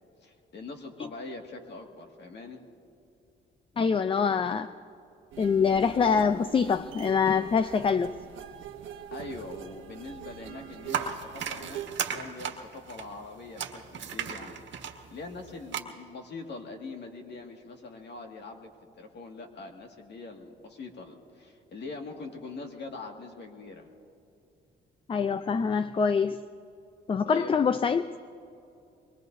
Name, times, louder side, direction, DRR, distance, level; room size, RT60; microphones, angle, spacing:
voice 1, 0.2-2.6 9.1-14.6 14.9-23.9 27.3-27.5, left 3 dB, 60° left, 2 dB, 2.0 m, -43 dB
voice 2, 3.8-4.7 5.4-8.1 25.1-26.4 27.1-28.1, left 6 dB, 25° left, 12 dB, 0.4 m, -25 dB
sound 1, 5.3-11.9, right 10 dB, 85° right, 1.1 m, -43 dB
sound 2, 10.9-15.8, right 7 dB, 70° right, 1.5 m, -35 dB
24.0 x 22.5 x 2.7 m, 2.6 s
cardioid pair, 90°, 20 cm